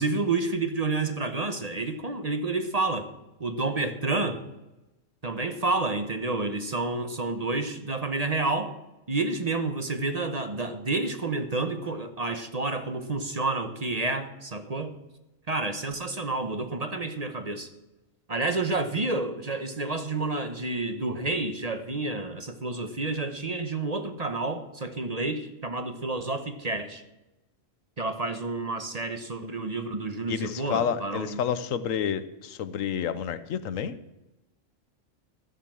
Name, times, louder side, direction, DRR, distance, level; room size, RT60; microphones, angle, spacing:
voice 1, 0.0-3.1 3.4-4.4 5.2-8.7 9.1-14.9 15.5-17.7 18.3-27.0 28.0-31.4, right 3 dB, 35° right, 8 dB, 0.9 m, -29 dB
voice 2, 30.3-33.9, left 8 dB, 80° left, 14 dB, 1.1 m, -29 dB
13.5 x 7.4 x 7.5 m, 0.99 s
omnidirectional pair, 1.4 m